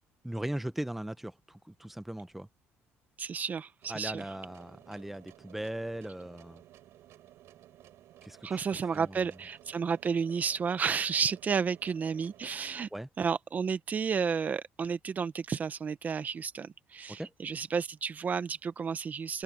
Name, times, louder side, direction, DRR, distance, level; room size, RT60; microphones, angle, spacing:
voice 1, 0.2-2.5 3.9-6.6 8.2-8.6 8.9-9.2 12.9-13.1 17.1-17.3, right 1 dB, 5° right, 0.9 m, -38 dB
voice 2, 3.2-4.2 8.4-12.9 13.2-19.4, right 6 dB, 35° right, 1.0 m, -32 dB
sound 1, 3.8-12.9, right 13 dB, 70° right, 4.9 m, -56 dB
cardioid pair, 115°, 5 cm